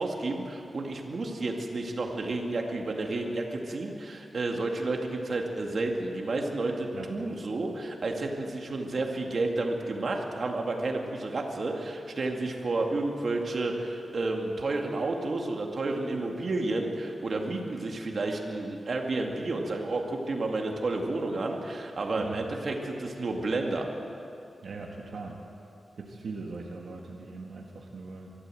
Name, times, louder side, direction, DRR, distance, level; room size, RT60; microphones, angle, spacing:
voice 1, 0.0-23.9, right 2 dB, 55° right, 1 dB, 2.3 m, -31 dB
voice 2, 24.6-25.4 26.0-28.3, right 3 dB, 75° right, 0 dB, 1.9 m, -40 dB
24.0 x 14.0 x 7.8 m, 2.8 s
wide cardioid pair, 110°, 0 cm